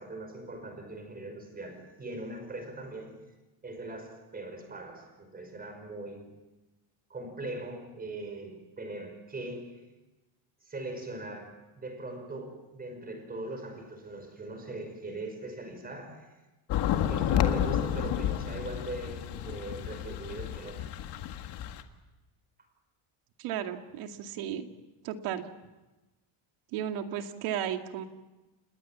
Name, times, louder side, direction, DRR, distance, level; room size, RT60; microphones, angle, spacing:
voice 1, 0.0-3.3 3.6-6.4 7.1-9.9 10.6-16.4 17.1-20.9, right 2 dB, 20° right, 5.3 m, -40 dB
sound 1, 16.7-21.8, left 10 dB, 55° left, 1.8 m, -30 dB
voice 2, 23.4-24.7 25.0-25.5 26.7-28.0, right 10 dB, 90° right, 2.5 m, -34 dB
29.5 x 20.0 x 7.3 m
cardioid pair, 170°, 49 cm